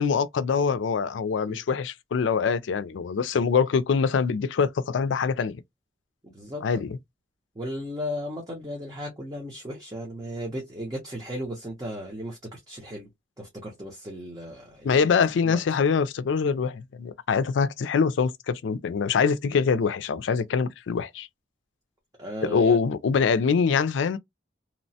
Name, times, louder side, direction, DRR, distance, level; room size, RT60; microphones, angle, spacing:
voice 1, 0.0-5.6 6.6-7.0 14.8-21.3 22.4-24.2, left 5 dB, 85° left, 0.4 m, -24 dB
voice 2, 6.2-6.8 7.6-13.1 13.4-15.0 15.4-15.6 19.5-19.6 22.2-22.8, equal, 20° right, 0.7 m, -36 dB
2.9 x 2.1 x 2.7 m
head